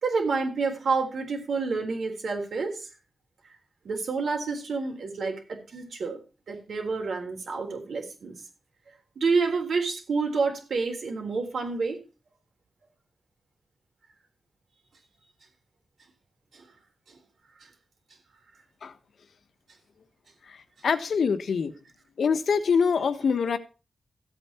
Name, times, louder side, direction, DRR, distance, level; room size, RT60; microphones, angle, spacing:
voice 1, 0.0-2.8 3.9-6.2 6.5-8.4 9.2-12.0 16.5-16.6, right 4 dB, 75° right, 3.7 m, -28 dB
voice 2, 20.5-21.7 22.2-23.6, left 6 dB, 75° left, 1.3 m, -25 dB
14.5 x 8.3 x 4.5 m
wide cardioid pair, 105°, 0 cm